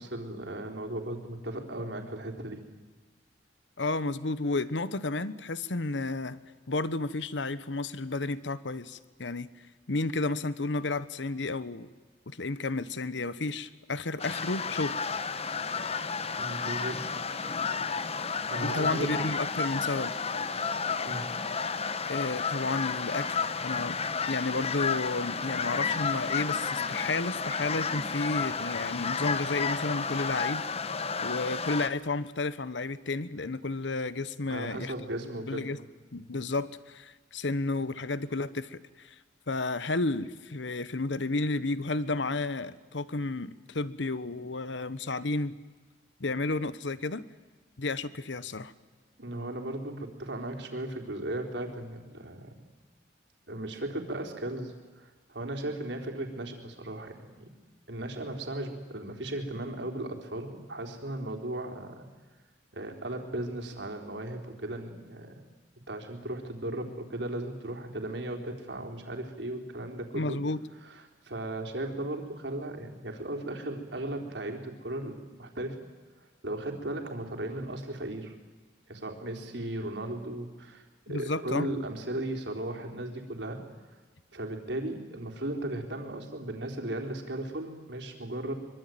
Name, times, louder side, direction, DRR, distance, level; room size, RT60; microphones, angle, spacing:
voice 1, 0.0-2.6 16.4-17.3 18.5-19.3 21.0-21.4 34.5-35.7 49.2-52.5 53.5-57.5 57.9-62.1 62.7-65.4 65.9-70.4 70.8-75.8 76.2-78.4 78.9-83.6 84.3-88.5, right 1 dB, 70° right, 3 dB, 3.9 m, -36 dB
voice 2, 3.8-6.4 6.7-9.5 9.9-11.9 12.3-15.0 18.6-20.1 22.1-23.4 23.6-24.0 24.3-30.7 31.2-34.9 35.5-35.8 36.1-39.1 39.5-45.6 46.2-47.2 47.8-48.7 70.1-70.6 81.1-81.7, left 3 dB, 80° left, 16 dB, 1.1 m, -32 dB
sound 1, 14.2-31.9, left 5 dB, 35° left, 1.1 m, -32 dB
24.0 x 24.0 x 9.2 m, 1.3 s
head